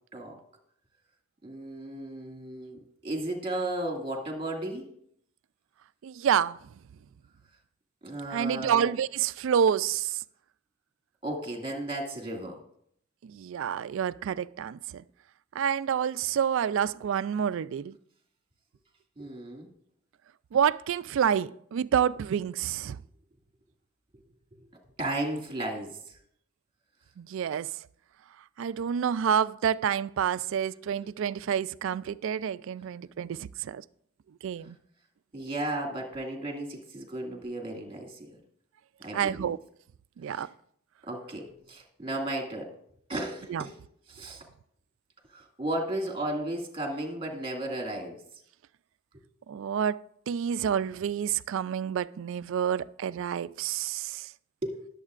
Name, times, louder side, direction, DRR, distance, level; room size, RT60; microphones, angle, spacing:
voice 1, 1.4-4.9 8.0-8.9 11.2-12.6 19.2-19.7 24.5-24.6 25.0-26.2 35.3-38.4 39.0-39.5 40.3-40.5 41.1-42.7 43.1-43.8 44.1-44.4 45.3-48.2 54.6-54.8, right 1 dB, 25° right, 2.0 m, -34 dB
voice 2, 6.0-6.6 8.3-10.2 13.2-15.0 15.6-17.9 20.5-23.0 27.2-27.7 28.6-33.8 34.4-34.8 39.1-39.6 40.2-40.5 43.5-43.6 49.5-50.0 50.3-54.3, right 8 dB, 60° right, 0.3 m, -28 dB
19.5 x 7.4 x 2.5 m
head